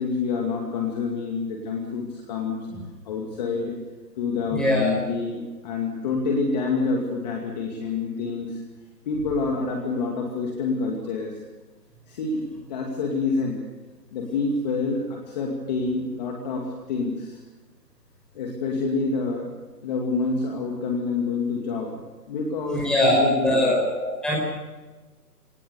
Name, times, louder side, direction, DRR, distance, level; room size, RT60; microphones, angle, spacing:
voice 1, 0.0-2.7 3.0-3.8 4.2-8.6 9.1-11.4 12.1-13.6 14.1-17.4 18.3-19.5 19.8-22.0 22.3-23.7, left 4 dB, 25° left, 1 dB, 2.4 m, -27 dB
voice 2, 4.5-4.9 22.7-24.4, left 1 dB, ahead, -4 dB, 5.4 m, -22 dB
23.5 x 18.5 x 6.9 m, 1.2 s
hypercardioid pair, 165°, 49 cm